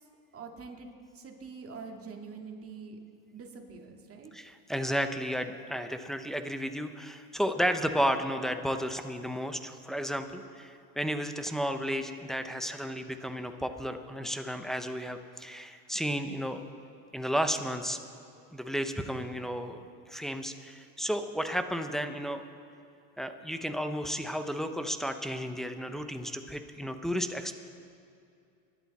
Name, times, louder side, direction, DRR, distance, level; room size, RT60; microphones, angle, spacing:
voice 1, 0.3-0.9 1.1-3.0 3.3-4.3, right 4 dB, 30° right, 2 dB, 2.3 m, -45 dB
voice 2, 4.3-16.6 17.1-18.0 18.5-22.4 23.2-27.5, equal, ahead, 7 dB, 0.8 m, -33 dB
25.0 x 11.0 x 4.3 m, 2.5 s
supercardioid pair, 110°, 44 cm